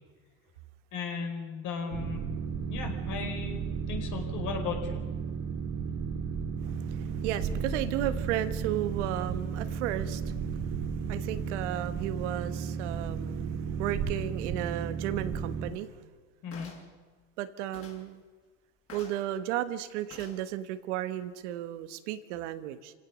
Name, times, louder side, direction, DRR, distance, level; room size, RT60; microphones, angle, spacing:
voice 1, 0.9-2.2 2.7-3.6 3.9-5.0 16.4-16.7, left 6 dB, 60° left, 3 dB, 5.1 m, -36 dB
Boat Water vehicle, 1.9-15.7, right 6 dB, 60° right, 2.4 m, -34 dB
voice 2, 6.6-15.9 17.4-18.2 18.9-22.9, right 12 dB, 85° right, 10 dB, 1.5 m, -34 dB
sound 1, 16.5-16.9 17.7-18.0 18.9-19.2 20.1-20.4 21.2-21.4, left 4 dB, 40° left, 6.2 m, -48 dB
27.0 x 17.0 x 6.4 m, 1.4 s
supercardioid pair, 100°, 34 cm